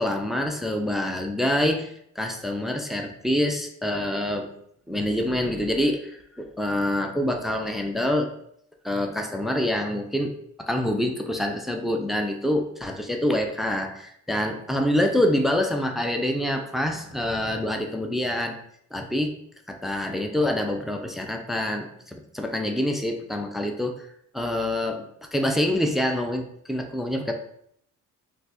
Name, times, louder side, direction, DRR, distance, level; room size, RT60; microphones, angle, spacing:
voice 1, 0.0-4.5 4.9-6.1 6.4-8.3 8.8-10.3 10.6-18.6 18.9-19.3 19.7-24.1 24.3-25.1 25.3-27.3, left 1 dB, ahead, 4 dB, 0.4 m, -26 dB
2.4 x 2.3 x 3.9 m, 0.69 s
cardioid pair, 90°, 30 cm